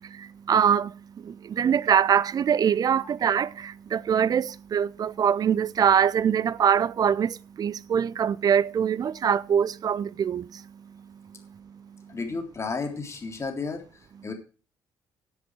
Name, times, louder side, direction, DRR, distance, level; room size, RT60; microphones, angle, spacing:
voice 1, 0.0-10.7 11.5-12.1, right 8 dB, 40° right, 0.6 m, -24 dB
voice 2, 12.1-14.3, left 4 dB, 25° left, 3.3 m, -33 dB
14.5 x 8.1 x 4.7 m
figure-of-eight pair, 45°, 10 cm